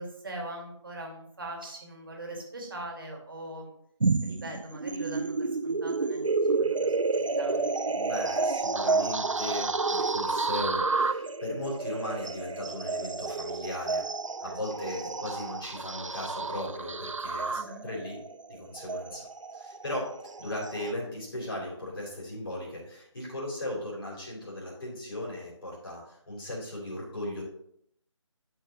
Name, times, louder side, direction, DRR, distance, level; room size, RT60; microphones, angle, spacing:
voice 1, 0.0-3.7 4.2-6.2 6.6-7.7 14.4-14.6 17.5-17.8, right 1 dB, 45° right, 1 dB, 2.0 m, -41 dB
sound 1, 4.0-20.9, right 3 dB, 75° right, 0.5 m, -30 dB
voice 2, 7.9-14.0 14.4-18.2 18.5-19.3 19.5-20.1 20.4-27.4, left 1 dB, 45° left, -3 dB, 3.5 m, -37 dB
11.5 x 4.8 x 3.0 m, 0.68 s
figure-of-eight pair, 155°, 16 cm